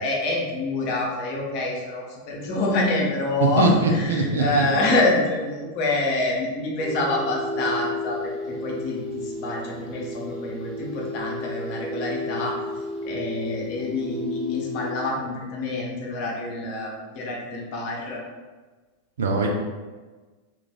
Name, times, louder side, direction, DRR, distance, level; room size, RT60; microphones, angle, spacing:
voice 1, 0.0-8.3 8.6-12.5 13.0-18.2, left 2 dB, 45° left, -2 dB, 0.8 m, -26 dB
voice 2, 3.6-4.7 19.2-19.5, right 2 dB, 65° right, 1 dB, 0.5 m, -21 dB
sound 1, 6.8-14.9, left 2 dB, 10° right, 1.3 m, -32 dB
3.0 x 2.5 x 3.5 m, 1.3 s
figure-of-eight pair, 90°, 0 cm